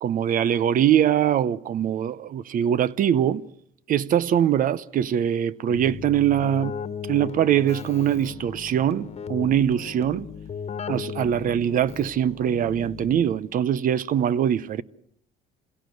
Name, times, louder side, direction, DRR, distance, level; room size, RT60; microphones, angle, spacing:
voice 1, 0.0-3.4 3.9-6.8 7.1-10.3 10.9-14.8, right 10 dB, 55° right, 0.8 m, -22 dB
Keyboard (musical), 5.7-13.6, left 7 dB, 40° left, 1.4 m, -36 dB
27.0 x 17.0 x 7.8 m
cardioid pair, 110°, 17 cm